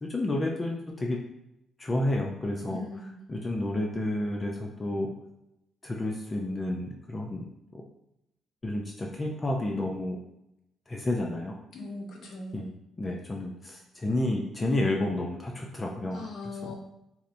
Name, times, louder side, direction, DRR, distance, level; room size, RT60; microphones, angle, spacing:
voice 1, 0.0-1.2 1.8-2.8 3.3-5.1 5.8-7.5 7.7-7.8 8.6-10.2 10.9-11.6 12.5-12.7 13.0-16.2 16.6-16.7, left 1 dB, 25° left, 0 dB, 0.4 m, -30 dB
voice 2, 2.7-3.2 11.7-12.6 16.1-16.7, left 3 dB, 65° left, 1 dB, 0.7 m, -40 dB
4.1 x 2.0 x 2.5 m, 0.86 s
cardioid pair, 90°, 0 cm